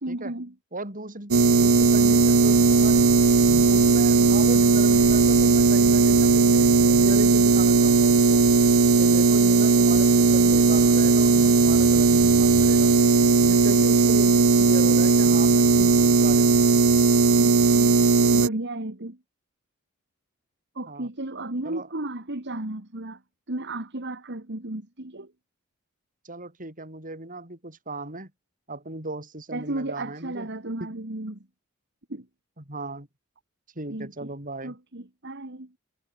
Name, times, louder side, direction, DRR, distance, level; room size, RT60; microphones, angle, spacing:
voice 1, 0.0-0.5 17.3-19.2 20.7-23.2 23.5-25.3 29.5-31.5 32.1-32.3 33.9-34.3 34.6-35.7, right 2 dB, 55° right, 2.4 m, -34 dB
voice 2, 0.7-3.1 3.7-8.4 9.0-12.9 13.4-16.7 20.9-21.1 21.6-21.9 26.2-28.3 28.7-30.5 32.6-33.1 33.8-34.7, right 2 dB, 40° right, 7.0 m, -36 dB
sound 1, 1.3-18.5, right 4 dB, 80° right, 0.9 m, -18 dB
head